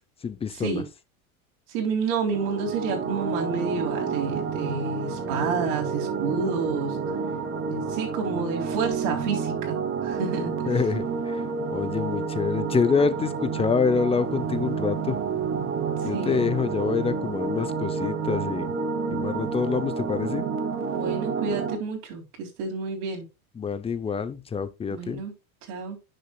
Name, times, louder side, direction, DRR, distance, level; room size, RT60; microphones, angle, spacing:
voice 1, 0.2-0.8 10.7-11.4 11.7-15.2 16.0-18.7 19.1-20.4 23.6-25.2, left 5 dB, 15° left, 0.6 m, -26 dB
voice 2, 1.7-7.0 7.7-10.5 16.0-16.4 20.9-23.2 24.9-25.3 25.7-26.0, right 5 dB, 60° right, 3.5 m, -29 dB
sound 1, 2.3-21.8, right 5 dB, 30° right, 1.2 m, -29 dB
10.0 x 6.5 x 2.3 m
supercardioid pair, 115°, 44 cm